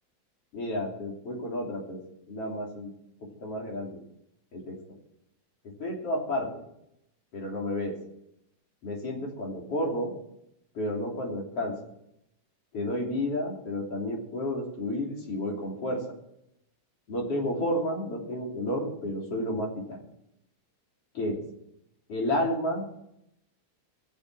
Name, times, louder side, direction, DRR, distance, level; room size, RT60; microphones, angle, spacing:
voice 1, 0.5-2.0 2.3-2.9 3.4-4.0 4.5-4.8 5.8-6.6 7.3-8.0 8.8-10.1 10.8-11.8 12.7-16.0 17.1-20.0 21.1-21.4 22.1-22.9, left 1 dB, 55° left, -1 dB, 4.1 m, -31 dB
20.0 x 6.9 x 6.2 m, 0.79 s
omnidirectional pair, 3.3 m